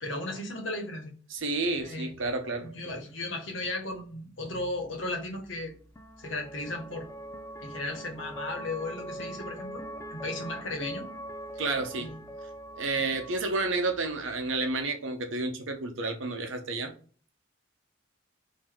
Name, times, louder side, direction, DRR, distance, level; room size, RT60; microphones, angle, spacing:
voice 1, 0.0-1.1 1.8-2.1 2.6-5.7 6.2-7.1 7.6-9.8 10.1-11.1 12.0-12.2, left 2 dB, 65° left, 1.2 m, -35 dB
voice 2, 1.3-2.7 11.6-12.1 12.8-17.0, right 3 dB, 70° right, 0.9 m, -30 dB
sound 1, 4.5-14.8, right 1 dB, 15° left, 0.5 m, -43 dB
3.9 x 2.9 x 4.4 m
head